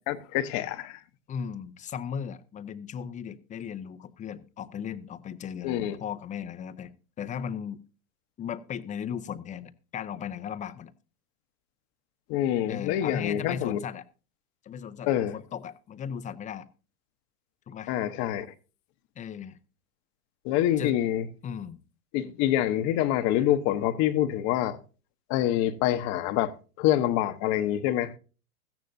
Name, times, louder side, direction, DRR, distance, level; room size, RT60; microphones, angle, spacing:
voice 1, 0.1-1.0 5.6-6.0 12.3-13.8 15.1-15.4 17.9-18.5 20.4-21.3 22.1-24.8 25.3-28.1, left 12 dB, 40° left, 1.0 m, -26 dB
voice 2, 1.3-6.9 7.2-7.8 8.4-10.9 12.7-14.0 14.6-16.7 17.7-17.9 19.2-19.6 20.8-21.0 21.4-21.8, left 8 dB, 15° left, 0.6 m, -36 dB
16.5 x 14.5 x 2.7 m
hypercardioid pair, 110°, 45 cm